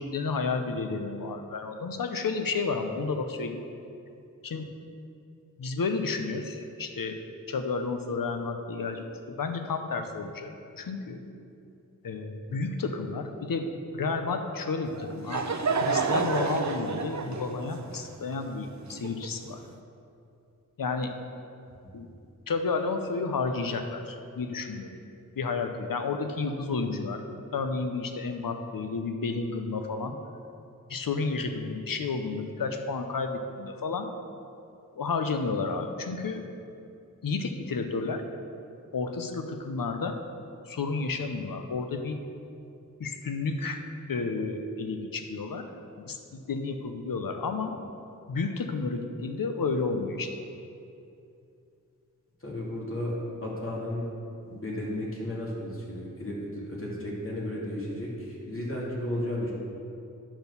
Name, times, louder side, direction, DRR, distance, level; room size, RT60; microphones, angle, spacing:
voice 1, 0.0-3.6 4.4-4.7 5.6-7.2 7.5-11.2 12.0-15.5 15.7-19.6 20.8-21.1 21.9-22.1 22.5-24.9 25.3-27.2 27.5-30.2 30.9-34.1 35.0-36.4 37.2-38.2 38.9-40.2 40.7-42.2 43.0-43.8 44.1-45.7 46.0-47.7 48.3-50.4, left 4 dB, 85° left, 6 dB, 0.8 m, -31 dB
Laughter / Crowd, 14.9-19.6, right 4 dB, 55° right, 0.6 m, -30 dB
voice 2, 52.4-54.1 54.4-59.5, left 1 dB, 40° left, -5 dB, 2.4 m, -34 dB
10.0 x 4.5 x 6.8 m, 2.6 s
wide cardioid pair, 70°, 33 cm